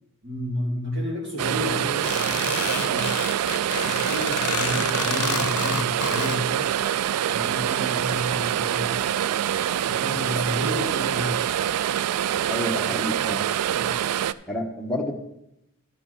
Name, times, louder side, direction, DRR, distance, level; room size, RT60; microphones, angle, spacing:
voice 1, 0.2-3.5 3.8-6.7 7.2-9.5 9.9-11.5 13.7-14.0, equal, 55° right, -4 dB, 3.7 m, -32 dB
sound 1, 1.4-14.3, right 10 dB, 80° right, 0.3 m, -25 dB
sound 2, 2.0-6.4, left 9 dB, 80° left, 0.5 m, -30 dB
voice 2, 12.5-13.5 14.5-15.1, left 1 dB, ahead, -1 dB, 1.1 m, -29 dB
12.5 x 6.2 x 4.4 m, 0.83 s
head